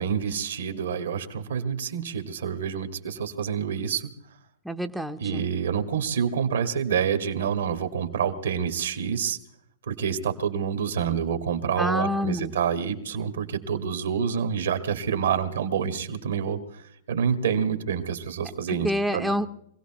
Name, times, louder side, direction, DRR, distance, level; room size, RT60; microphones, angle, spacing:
voice 1, 0.0-4.1 5.2-9.4 9.9-16.8 17.1-19.3, right 7 dB, 80° right, 8 dB, 1.9 m, -27 dB
voice 2, 4.6-5.4 11.8-12.6 18.8-19.5, equal, ahead, 6 dB, 0.8 m, -27 dB
24.5 x 17.0 x 3.0 m, 0.74 s
hypercardioid pair, 110°, 0 cm